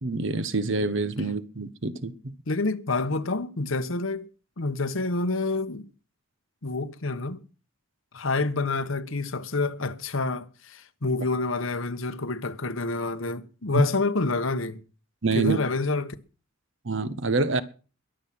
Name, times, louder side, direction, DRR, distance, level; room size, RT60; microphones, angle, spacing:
voice 1, 0.0-2.3 13.7-13.9 15.2-15.6 16.8-17.6, right 3 dB, 65° right, 1.2 m, -26 dB
voice 2, 2.5-4.2 4.6-5.9 6.6-7.4 8.1-14.8 15.3-16.2, left 3 dB, 70° left, 1.2 m, -28 dB
22.0 x 7.6 x 6.0 m
head